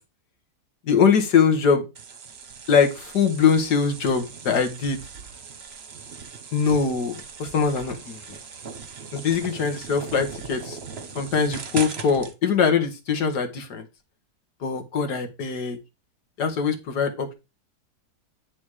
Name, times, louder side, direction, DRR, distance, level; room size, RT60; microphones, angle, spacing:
voice 1, 0.9-1.9 2.7-5.0 6.5-8.2 9.1-10.8 11.2-13.8 14.6-15.8 16.4-17.3, left 6 dB, 85° left, 6 dB, 2.0 m, -22 dB
sound 1, 1.9-12.3, right 5 dB, 45° right, 1.1 m, -39 dB
9.1 x 4.1 x 4.9 m, 0.26 s
omnidirectional pair, 1.7 m